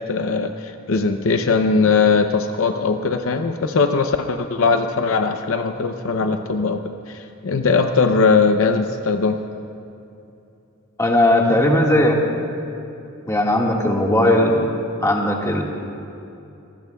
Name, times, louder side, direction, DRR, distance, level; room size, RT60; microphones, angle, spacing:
voice 1, 0.0-9.4, left 4 dB, 65° left, 7 dB, 0.6 m, -20 dB
voice 2, 11.0-12.2 13.3-14.6 15.0-15.6, left 1 dB, 15° left, -1 dB, 1.7 m, -17 dB
26.5 x 19.5 x 2.3 m, 2.7 s
head